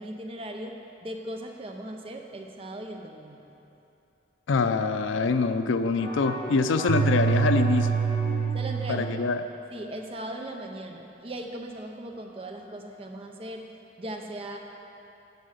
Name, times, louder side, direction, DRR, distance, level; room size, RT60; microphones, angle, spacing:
voice 1, 0.0-3.4 8.5-9.1 9.7-13.7 14.0-14.6, right 1 dB, 30° right, 3 dB, 0.6 m, -38 dB
voice 2, 4.5-8.0 8.9-9.4, left 4 dB, 85° left, 9 dB, 0.4 m, -25 dB
sound 1, 5.9-8.8, left 1 dB, 60° left, 2.0 m, -38 dB
sound 2, 6.9-9.4, right 6 dB, 75° right, 0.3 m, -25 dB
9.2 x 5.5 x 6.5 m, 2.9 s
head